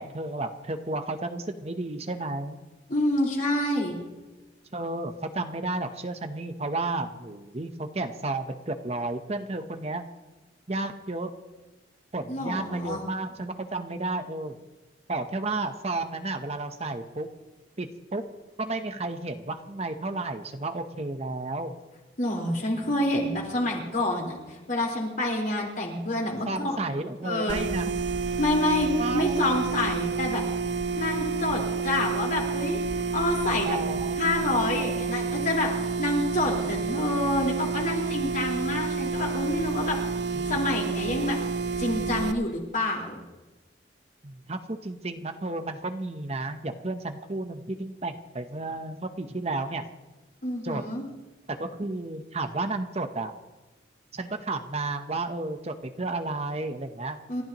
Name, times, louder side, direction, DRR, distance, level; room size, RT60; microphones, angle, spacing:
voice 1, 0.0-2.6 4.7-10.1 10.7-11.3 12.1-14.6 15.1-17.3 17.8-18.2 18.6-21.7 26.5-27.9 29.0-29.4 33.6-34.3 40.3-40.5 40.9-41.0 44.2-49.9 50.6-50.8 51.5-53.3 54.1-57.2, right 2 dB, 35° right, 7 dB, 0.9 m, -32 dB
voice 2, 2.9-3.9 12.3-13.0 22.2-26.8 27.2-27.6 28.4-30.4 31.0-32.8 33.1-33.8 34.2-35.7 36.0-40.0 40.5-41.4 41.8-43.1 50.4-51.0 57.3-57.4, left 2 dB, 45° left, -2 dB, 4.3 m, -27 dB
sound 1, 27.5-42.3, right 5 dB, 65° right, 0.8 m, -29 dB
29.5 x 14.5 x 3.0 m, 1.2 s
head